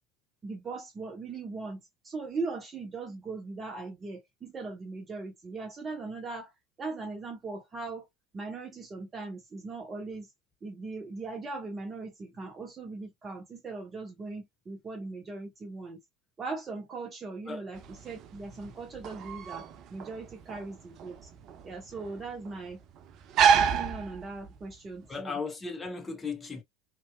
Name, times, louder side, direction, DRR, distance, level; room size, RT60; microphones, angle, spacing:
voice 1, 0.4-6.5 6.8-8.1 8.3-10.3 10.6-16.0 16.4-21.3 21.6-22.8 23.6-25.4, right 3 dB, 25° right, 1.3 m, -39 dB
sound 1, 17.8-24.7, right 7 dB, 45° right, 0.4 m, -29 dB
voice 2, 25.1-26.6, left 4 dB, 20° left, 0.9 m, -36 dB
2.9 x 2.6 x 2.3 m
figure-of-eight pair, 70°, 0 cm